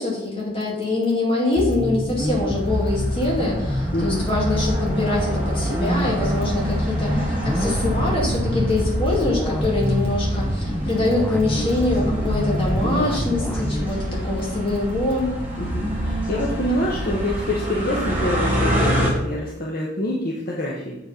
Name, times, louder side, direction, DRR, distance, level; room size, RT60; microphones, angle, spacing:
voice 1, 0.0-15.3, left 2 dB, 25° left, -4 dB, 2.4 m, -24 dB
sound 1, 1.6-13.9, left 1 dB, 5° left, 0.4 m, -26 dB
sound 2, 2.2-19.1, right 1 dB, 10° right, 1.8 m, -27 dB
voice 2, 3.9-4.3 14.1-14.4 15.6-21.0, left 1 dB, 45° left, -4 dB, 1.0 m, -26 dB
7.8 x 5.0 x 5.1 m, 0.87 s
head